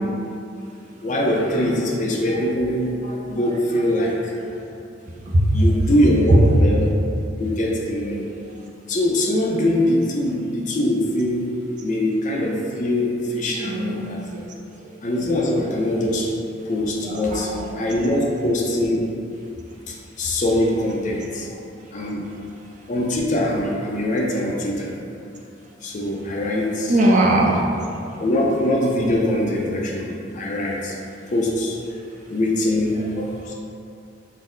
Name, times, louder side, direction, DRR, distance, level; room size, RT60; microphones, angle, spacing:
voice 1, 1.0-4.6 5.5-6.9 7.4-8.3 8.9-11.5 11.8-14.2 15.0-16.3 16.6-19.1 19.9-21.6 21.9-22.3 22.9-24.9 25.8-26.9 28.2-31.0 31.3-31.8 32.3-33.5, left 1 dB, 40° left, -2 dB, 0.4 m, -22 dB
voice 2, 5.1-5.6 6.3-6.4 13.6-14.9 15.2-15.4 17.0-17.7 26.9-27.6, right 1 dB, 40° right, -2 dB, 0.4 m, -20 dB
4.1 x 2.0 x 3.7 m, 2.5 s
head